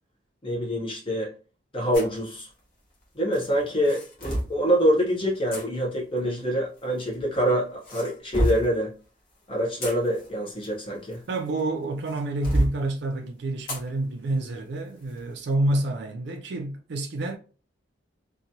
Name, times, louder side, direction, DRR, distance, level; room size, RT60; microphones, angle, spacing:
voice 1, 0.4-1.3 1.7-2.5 3.2-8.9 9.5-11.2, equal, 25° left, 0.6 m, -25 dB
sound 1, 1.9-2.2 3.3-4.6 5.5-5.6 6.8-7.4 7.8-8.7 9.5-11.6 12.1-12.8 13.7-13.9 14.3-14.4 15.0-15.2, right 1 dB, 45° left, 1.1 m, -29 dB
voice 2, 11.3-17.4, right 2 dB, 60° right, 0.4 m, -28 dB
2.8 x 2.2 x 2.6 m
head